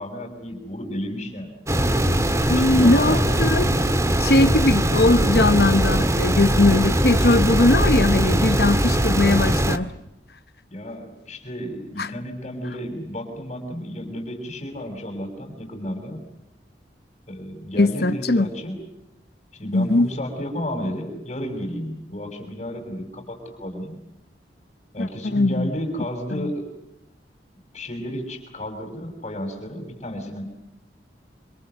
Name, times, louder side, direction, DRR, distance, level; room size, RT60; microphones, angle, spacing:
voice 1, 0.0-1.6 2.4-3.3 10.7-16.2 17.3-18.8 19.5-24.0 24.9-26.6 27.7-30.4, equal, 35° left, 5.9 m, -32 dB
sound 1, 1.7-9.8, right 1 dB, 15° right, 1.7 m, -21 dB
voice 2, 2.5-3.7 4.2-9.9 12.0-12.1 17.8-18.5 19.7-20.1 25.0-25.7 26.3-26.5, left 2 dB, 60° left, 1.0 m, -20 dB
27.5 x 26.5 x 7.9 m
head